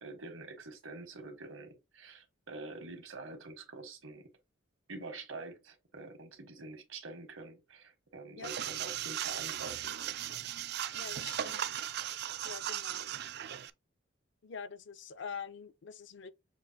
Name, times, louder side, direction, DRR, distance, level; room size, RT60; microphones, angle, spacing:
voice 1, 0.0-4.3 4.9-9.9, right 3 dB, 85° right, 1.5 m, -46 dB
sound 1, 8.4-13.7, right 11 dB, 55° right, 0.3 m, -37 dB
voice 2, 10.9-11.6 12.4-13.1 14.4-16.3, left 6 dB, 65° left, 0.5 m, -45 dB
6.9 x 2.5 x 2.8 m
head